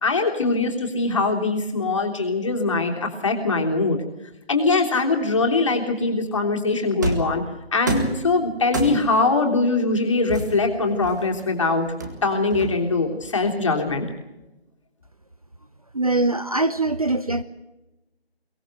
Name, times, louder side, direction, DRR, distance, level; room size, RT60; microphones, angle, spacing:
voice 1, 0.0-4.0 4.5-7.4 7.7-11.9 12.2-14.1, left 3 dB, 30° left, 2 dB, 3.3 m, -22 dB
sound 1, 7.0-7.4 7.9-8.2 8.7-9.2 10.3-11.4 12.0-13.0, right 2 dB, 15° right, 1.8 m, -28 dB
voice 2, 15.9-17.4, right 2 dB, 35° right, 12 dB, 0.8 m, -22 dB
23.5 x 18.0 x 7.8 m, 1.0 s
figure-of-eight pair, 165°, 32 cm